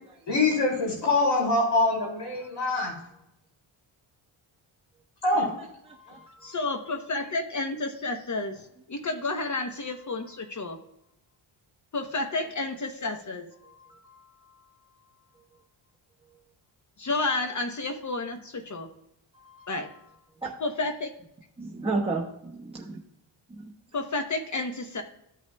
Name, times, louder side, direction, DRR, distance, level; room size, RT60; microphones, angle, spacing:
voice 1, 0.3-2.9 5.2-5.4, left 2 dB, 55° left, -2 dB, 2.6 m, -24 dB
voice 2, 5.9-6.5 13.9-14.2 19.3-19.7 20.4-20.5 21.6-23.0 23.5-23.7, right 3 dB, 10° right, -3 dB, 1.0 m, -33 dB
voice 3, 6.4-10.8 11.9-13.5 17.0-18.9 19.7-19.9 20.6-21.1 23.9-25.0, left 3 dB, 35° left, 5 dB, 0.9 m, -31 dB
14.0 x 5.8 x 2.3 m, 0.81 s
cardioid pair, 110°, 49 cm